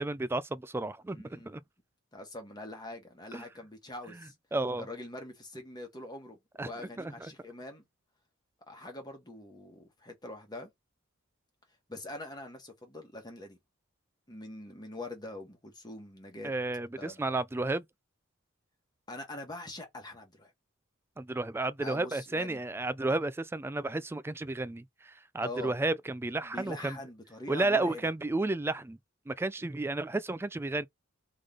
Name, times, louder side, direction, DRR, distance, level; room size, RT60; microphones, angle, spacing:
voice 1, 0.0-1.6 3.3-3.4 4.1-4.9 6.6-6.7 7.0-7.3 16.4-17.8 21.2-27.0 27.5-29.0 29.3-30.9, right 2 dB, 10° right, 0.3 m, -32 dB
voice 2, 1.1-1.6 2.1-4.3 4.8-7.8 8.7-10.7 11.9-13.6 14.3-16.5 17.0-17.2 19.1-20.5 21.8-22.6 25.4-25.7 26.4-28.1, left 2 dB, 20° left, 1.3 m, -44 dB
3.7 x 3.2 x 3.8 m
head